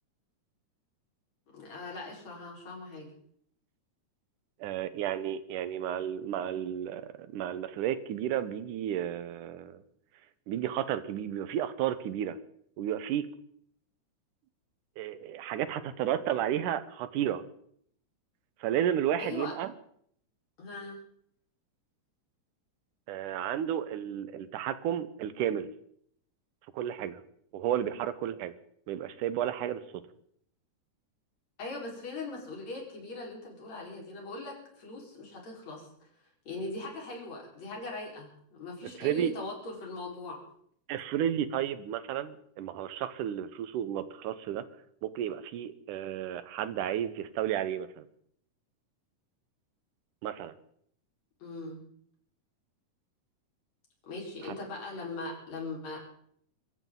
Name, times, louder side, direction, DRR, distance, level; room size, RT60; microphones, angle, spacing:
voice 1, 1.5-3.1 19.2-19.5 20.6-21.0 31.6-35.9 36.5-40.4 51.4-51.8 54.1-56.0, left 2 dB, 60° left, -2 dB, 5.7 m, -40 dB
voice 2, 4.6-9.8 10.5-12.4 12.8-13.3 15.0-17.4 18.6-19.7 23.1-25.7 26.7-27.2 27.5-28.5 28.9-29.8 39.0-39.3 40.9-44.7 45.0-48.0 50.2-50.5, right 10 dB, 80° right, 13 dB, 2.5 m, -32 dB
25.0 x 14.0 x 3.9 m, 0.66 s
omnidirectional pair, 3.6 m